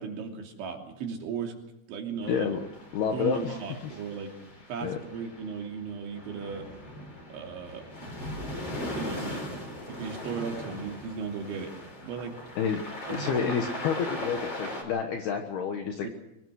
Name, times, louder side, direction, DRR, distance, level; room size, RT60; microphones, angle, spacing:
voice 1, 0.0-1.6 1.9-2.5 3.1-4.3 4.7-6.7 7.3-7.9 9.0-9.4 10.0-11.7 12.0-12.4 13.1-13.5 16.0-16.1, right 6 dB, 70° right, 2 dB, 5.3 m, -36 dB
sound 1, 2.2-14.8, left 1 dB, 25° left, 5.4 m, -39 dB
voice 2, 2.3-2.6 2.9-3.5 3.8-3.9 4.8-5.0 12.6-12.8 13.1-16.1, left 7 dB, 65° left, 4 dB, 3.0 m, -29 dB
24.5 x 20.5 x 6.5 m, 0.90 s
omnidirectional pair, 5.6 m